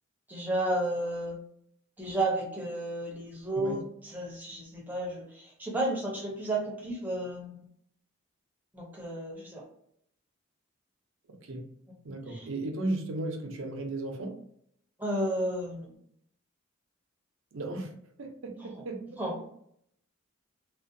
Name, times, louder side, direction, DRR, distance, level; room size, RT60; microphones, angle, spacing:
voice 1, 0.3-1.4 2.0-3.8 4.1-7.7 8.7-9.6 12.3-12.5 15.0-16.0 19.2-19.5, right 1 dB, 10° right, -2 dB, 0.6 m, -32 dB
voice 2, 12.0-14.3 17.5-17.9 18.2-19.2, right 2 dB, 75° right, 3 dB, 0.5 m, -35 dB
2.4 x 2.1 x 2.5 m, 0.68 s
head